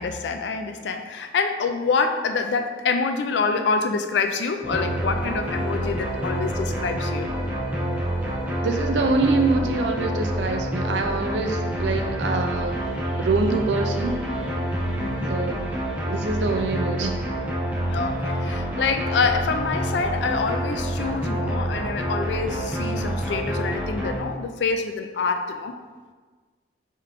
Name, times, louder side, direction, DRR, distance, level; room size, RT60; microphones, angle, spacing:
voice 1, 0.0-7.3 15.0-15.3 17.9-25.7, left 4 dB, 75° left, 6 dB, 0.4 m, -26 dB
sound 1, 4.6-24.2, equal, 10° right, 0.6 m, -27 dB
voice 2, 8.6-12.7 13.2-14.2 15.3-15.6 16.0-17.2, right 3 dB, 75° right, 5 dB, 0.4 m, -25 dB
4.8 x 3.5 x 2.9 m, 1.4 s
head